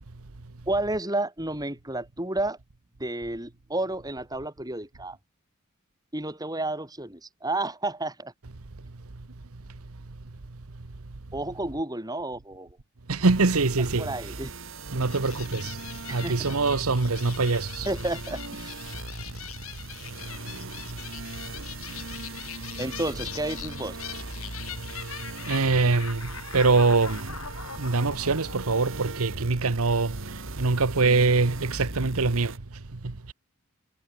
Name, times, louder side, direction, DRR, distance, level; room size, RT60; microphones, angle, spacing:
voice 1, 0.7-2.6 3.0-5.2 6.1-8.3 11.3-12.7 14.0-14.5 16.1-16.6 17.8-18.8 22.8-24.0, right 2 dB, 15° right, 6.7 m, -31 dB
voice 2, 13.1-14.4 14.9-15.8 16.1-17.9 25.5-27.3 27.8-32.5 33.0-33.3, right 3 dB, 75° right, 1.1 m, -24 dB
sound 1, 13.2-32.6, right 2 dB, 60° right, 4.2 m, -39 dB
sound 2, 15.0-29.7, left 9 dB, 70° left, 6.8 m, -42 dB
head